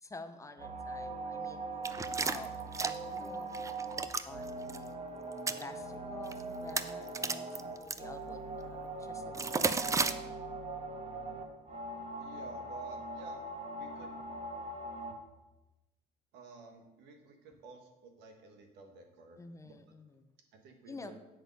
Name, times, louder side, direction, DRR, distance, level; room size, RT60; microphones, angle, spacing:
voice 1, 0.0-1.6 2.2-3.5 4.2-5.0 5.5-9.8 19.4-20.3 20.9-21.1, left 3 dB, 20° left, 9 dB, 0.6 m, -49 dB
sound 1, 0.6-15.1, right 2 dB, 40° right, 1.4 m, -41 dB
sound 2, 1.8-3.2 3.5-4.2 4.6-4.8 5.3-5.6 6.3-6.4 6.7-8.0 9.3-10.1, right 4 dB, 20° right, 0.4 m, -32 dB
voice 2, 12.2-13.4 13.7-14.2 16.3-19.7 20.6-21.2, right 4 dB, 90° right, 4 dB, 1.4 m, -52 dB
8.0 x 6.0 x 5.4 m, 1.0 s
cardioid pair, 110°, 17 cm